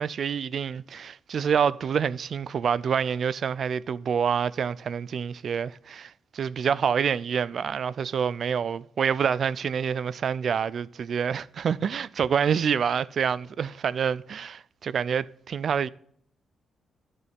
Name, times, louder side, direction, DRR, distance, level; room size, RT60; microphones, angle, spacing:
voice 1, 0.0-15.9, right 7 dB, 50° right, 0.3 m, -27 dB
11.5 x 6.8 x 3.5 m
cardioid pair, 135°, 0 cm